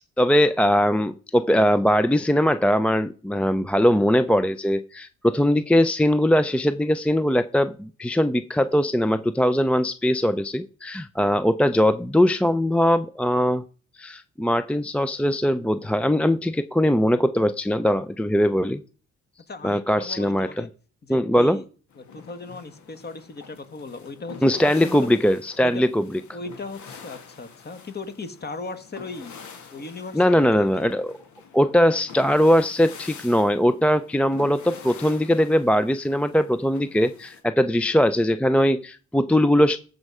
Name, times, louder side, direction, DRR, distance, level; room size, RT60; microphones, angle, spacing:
voice 1, 0.2-13.6 14.0-18.8 19.6-20.7 21.1-21.6 24.4-26.2 30.1-31.2 31.5-39.8, equal, 5° left, 13 dB, 0.5 m, -21 dB
voice 2, 19.5-20.7 21.0-21.7 22.0-25.1 25.6-25.8 26.3-29.3 29.7-30.9, left 3 dB, 35° left, 10 dB, 1.6 m, -37 dB
sound 1, 21.9-37.4, left 6 dB, 75° left, 2.3 m, -46 dB
14.0 x 5.5 x 4.8 m, 0.39 s
cardioid pair, 90°, 30 cm